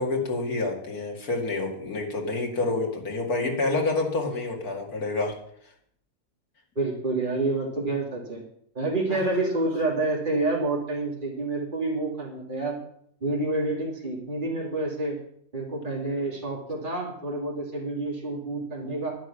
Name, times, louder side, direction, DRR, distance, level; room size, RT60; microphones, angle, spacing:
voice 1, 0.0-5.3 9.1-9.2, left 3 dB, 85° left, 0 dB, 2.8 m, -28 dB
voice 2, 6.7-8.4 8.7-12.8 13.2-15.2 15.5-19.1, right 2 dB, 35° right, -4 dB, 3.0 m, -28 dB
11.0 x 10.0 x 6.3 m, 0.68 s
omnidirectional pair, 1.5 m